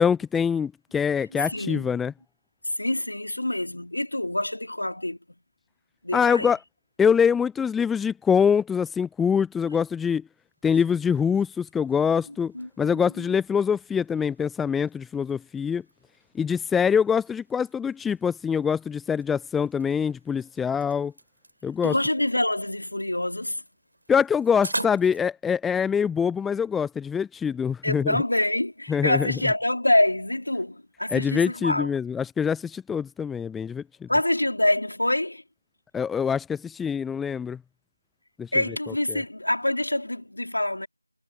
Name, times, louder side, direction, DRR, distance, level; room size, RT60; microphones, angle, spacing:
voice 1, 0.0-2.1 6.1-6.6 7.0-10.2 10.6-15.8 16.3-21.1 21.6-21.9 24.1-28.2 28.9-29.3 31.1-34.1 35.9-37.6 38.4-38.5 39.1-39.2, left 7 dB, 5° left, 0.4 m, -24 dB
voice 2, 1.3-2.0 2.6-5.2 6.0-6.5 12.5-13.3 21.8-23.6 27.8-31.9 34.1-35.4 38.5-40.9, left 1 dB, 65° left, 3.4 m, -26 dB
sound 1, 10.4-25.2, right 1 dB, 70° right, 4.2 m, -44 dB
figure-of-eight pair, 165°, 0 cm